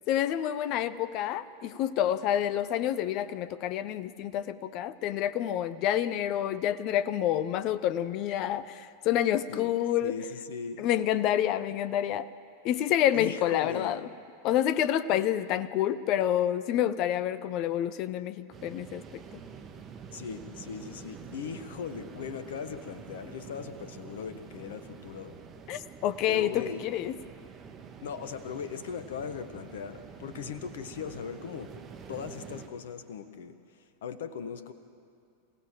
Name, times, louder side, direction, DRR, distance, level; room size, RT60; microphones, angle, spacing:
voice 1, 0.1-10.2 10.8-12.3 12.6-14.0 14.4-19.2 25.7-27.1, left 11 dB, 40° left, 16 dB, 0.7 m, -28 dB
voice 2, 10.0-10.9 13.1-14.0 15.1-15.2 20.1-25.3 26.3-26.9 28.0-31.7 32.1-33.6 34.0-34.7, left 7 dB, 60° left, 12 dB, 1.3 m, -39 dB
sound 1, 18.5-32.7, right 6 dB, 25° right, 1.9 m, -47 dB
27.0 x 17.0 x 7.7 m, 2.4 s
figure-of-eight pair, 90°, 0 cm